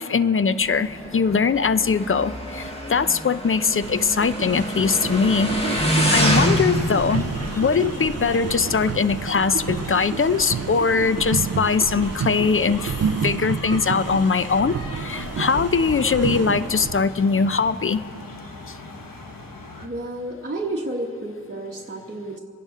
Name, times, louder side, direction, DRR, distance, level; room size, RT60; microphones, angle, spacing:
voice 1, 0.0-7.3 7.6-12.9 13.2-18.0, left 5 dB, 35° left, 13 dB, 0.5 m, -21 dB
Motorcycle, 0.6-8.9, equal, 15° left, 1.6 m, -26 dB
sound 1, 3.8-17.0, right 6 dB, 45° right, 0.5 m, -30 dB
sound 2, 4.8-19.9, left 2 dB, 65° left, 1.3 m, -38 dB
voice 2, 19.8-22.4, right 1 dB, 30° right, -1 dB, 1.1 m, -31 dB
26.0 x 10.5 x 3.7 m, 2.6 s
cardioid pair, 55°, 37 cm